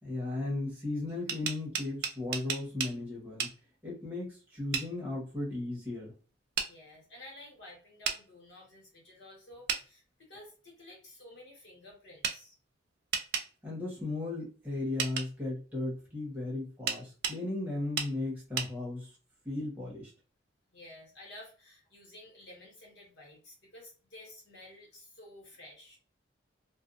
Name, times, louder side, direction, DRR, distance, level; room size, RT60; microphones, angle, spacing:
voice 1, 0.0-3.5 3.8-6.1 13.6-19.1 19.4-20.1, left 2 dB, 10° right, -4 dB, 1.0 m, -36 dB
sound 1, 1.1-2.9 3.4-3.5 4.7-4.9 6.6-6.7 8.0-8.2 9.7-9.8 12.2-12.4 13.1-13.5 15.0-15.3 16.9-17.4 18.0-18.1 18.6-18.7, right 7 dB, 55° right, 0.4 m, -33 dB
voice 2, 6.6-12.6 20.7-26.0, left 1 dB, 65° left, -2 dB, 1.3 m, -52 dB
2.4 x 2.3 x 2.5 m, 0.36 s
head